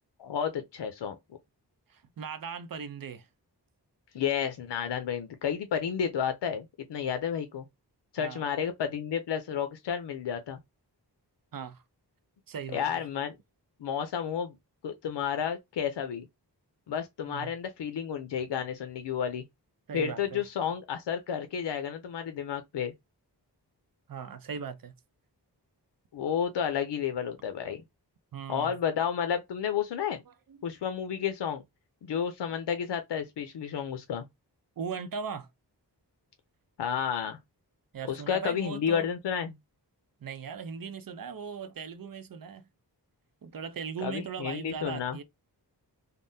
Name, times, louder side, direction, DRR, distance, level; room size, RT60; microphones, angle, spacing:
voice 1, 0.2-1.2 4.1-6.6 6.9-7.6 8.1-10.6 12.7-13.4 13.8-14.6 14.8-16.3 16.9-19.4 19.9-22.9 26.1-27.8 28.5-30.2 30.6-31.6 32.0-34.2 36.8-37.4 38.1-39.5 44.0-45.2, left 8 dB, 85° left, 0.6 m, -31 dB
voice 2, 1.9-3.3 8.2-8.4 11.5-11.8 12.5-13.1 17.2-17.5 19.9-20.4 24.1-24.9 28.3-28.7 30.3-30.6 34.8-35.5 37.9-39.1 40.2-42.7 43.4-45.2, right 6 dB, 55° right, 0.6 m, -39 dB
3.5 x 2.0 x 2.6 m
cardioid pair, 50°, 41 cm